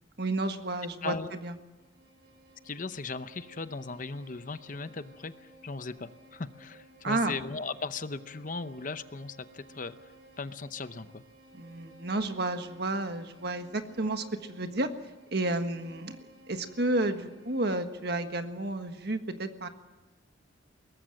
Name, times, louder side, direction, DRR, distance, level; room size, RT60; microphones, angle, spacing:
voice 1, 0.2-1.5 7.0-7.4 11.5-14.9 15.3-16.2 16.5-19.7, right 2 dB, 55° right, 7 dB, 1.6 m, -31 dB
voice 2, 1.0-1.3 2.6-10.1 10.4-11.2, left 4 dB, 40° left, 12 dB, 0.8 m, -38 dB
Bowed string instrument, 1.5-18.1, right 1 dB, 80° right, 4.3 m, -56 dB
22.0 x 19.0 x 7.7 m, 1.2 s
head